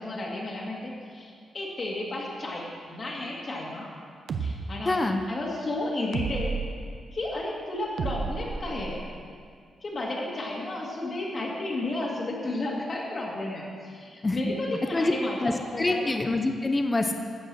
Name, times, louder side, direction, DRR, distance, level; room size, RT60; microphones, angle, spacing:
voice 1, 0.0-3.9 4.4-5.0 5.3-6.6 7.1-9.1 9.8-16.1, left 2 dB, 35° left, -4 dB, 2.1 m, -33 dB
sound 1, 4.3-4.5 6.1-6.7 8.0-9.1, right 5 dB, 60° right, 0.8 m, -31 dB
voice 2, 4.9-5.2 14.2-14.4 14.9-15.1 15.4-17.1, left 2 dB, 15° left, 5 dB, 0.7 m, -25 dB
14.5 x 8.0 x 6.2 m, 2.1 s
wide cardioid pair, 165°, 0 cm